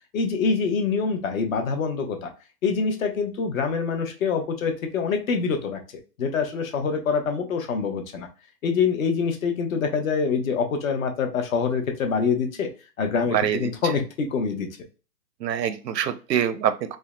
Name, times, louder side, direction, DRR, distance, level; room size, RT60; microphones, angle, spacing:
voice 1, 0.1-2.3 2.6-5.8 6.2-8.3 8.6-12.7 13.0-14.7, left 5 dB, 55° left, 5 dB, 0.8 m, -25 dB
voice 2, 13.3-13.7 15.4-17.0, right 9 dB, 85° right, 11 dB, 0.6 m, -25 dB
3.5 x 2.1 x 2.2 m, 0.33 s
hypercardioid pair, 140°, 49 cm